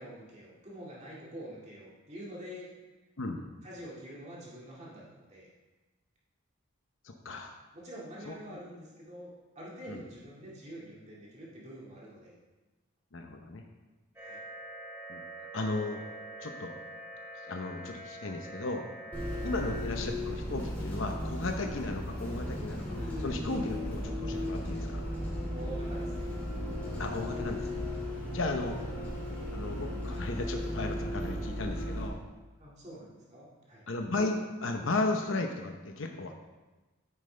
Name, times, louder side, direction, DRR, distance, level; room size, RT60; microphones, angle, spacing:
voice 1, 0.0-2.7 3.6-5.5 7.7-9.3 9.6-12.3 14.2-14.4 19.4-19.6 25.5-26.3 28.3-28.4 32.6-33.8, equal, 35° right, -6 dB, 2.2 m, -46 dB
voice 2, 7.0-7.6 8.3-8.6 9.9-10.0 13.1-13.6 15.1-16.0 16.4-16.7 17.5-18.8 19.4-25.0 27.0-27.8 28.3-28.8 29.5-32.2 33.9-36.3, left 2 dB, 65° left, 4 dB, 0.8 m, -35 dB
sound 1, 14.2-19.8, right 1 dB, 10° right, 1.0 m, -45 dB
Bus, 19.1-32.1, left 1 dB, 5° left, 2.5 m, -35 dB
9.3 x 8.8 x 3.3 m, 1.2 s
head